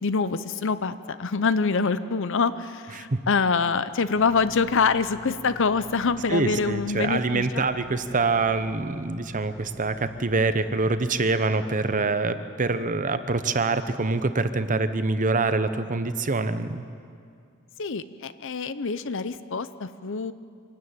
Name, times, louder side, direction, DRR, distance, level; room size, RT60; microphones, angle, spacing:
voice 1, 0.0-7.6 17.8-20.3, left 5 dB, 65° left, 13 dB, 0.8 m, -25 dB
sound 1, 4.1-11.3, equal, 10° right, 1.5 m, -46 dB
voice 2, 6.3-16.8, right 3 dB, 40° right, 11 dB, 0.9 m, -25 dB
25.0 x 13.0 x 9.0 m, 2.4 s
head